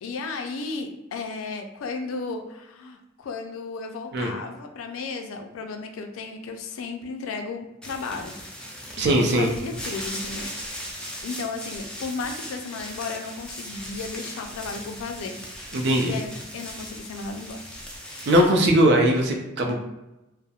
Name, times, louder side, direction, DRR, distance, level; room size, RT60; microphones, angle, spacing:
voice 1, 0.0-8.3 9.0-10.5 11.2-15.4 15.8-17.6 18.3-18.8 19.6-19.7, left 4 dB, 90° left, 4 dB, 0.4 m, -34 dB
sound 1, 7.8-18.5, equal, 5° left, 0.3 m, -38 dB
voice 2, 9.0-9.5 15.7-16.1 18.3-19.8, right 1 dB, 55° right, 2 dB, 0.4 m, -20 dB
2.3 x 2.0 x 2.8 m, 0.97 s
head